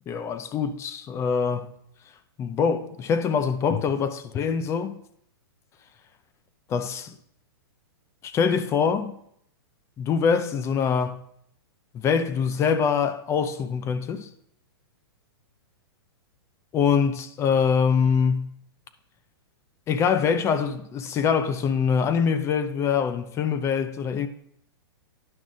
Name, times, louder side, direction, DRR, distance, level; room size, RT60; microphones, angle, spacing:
voice 1, 0.1-1.7 2.4-5.0 6.7-7.1 8.2-9.2 10.0-11.2 11.9-14.3 16.7-18.5 19.9-24.3, left 6 dB, 20° left, 0.6 m, -24 dB
11.0 x 6.1 x 3.9 m
hypercardioid pair, 140°, 13 cm